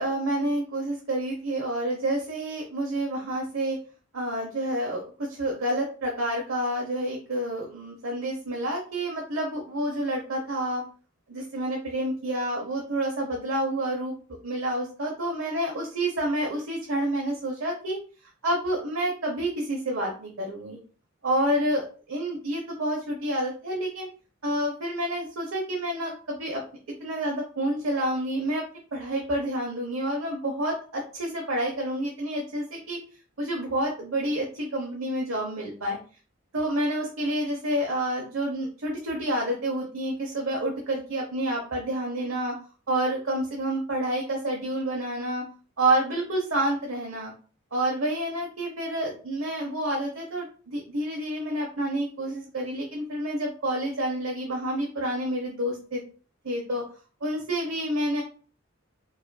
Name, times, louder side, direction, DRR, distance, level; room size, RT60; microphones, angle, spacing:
voice 1, 0.0-3.8 4.1-10.8 11.3-14.2 14.4-18.0 18.4-20.8 21.2-24.1 24.4-26.6 27.0-28.6 28.9-33.0 33.4-36.0 36.5-42.5 42.9-45.4 45.8-47.3 47.7-56.0 56.4-56.8 57.2-58.2, right 1 dB, 85° right, -1 dB, 0.8 m, -29 dB
4.9 x 2.5 x 2.2 m, 0.39 s
head